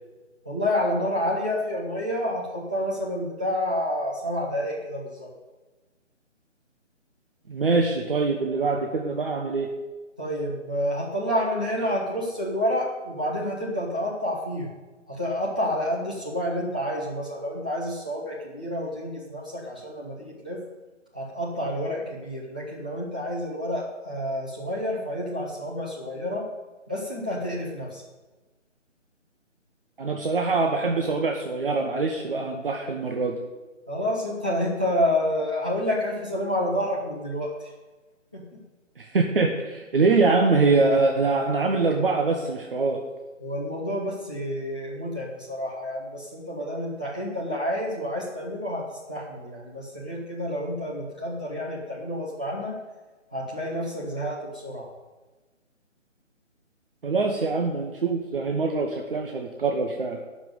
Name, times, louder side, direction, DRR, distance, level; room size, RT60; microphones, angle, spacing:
voice 1, 0.4-5.3 10.2-14.7 15.1-20.6 21.1-26.5 26.9-28.0 33.9-37.7 38.3-38.6 43.4-52.8 53.3-54.9, left 1 dB, 5° right, -6 dB, 0.6 m, -29 dB
voice 2, 7.5-9.7 30.0-33.4 39.0-43.0 57.0-60.2, right 3 dB, 45° right, 1 dB, 1.3 m, -24 dB
11.5 x 6.0 x 9.2 m, 1.2 s
figure-of-eight pair, 155°, 38 cm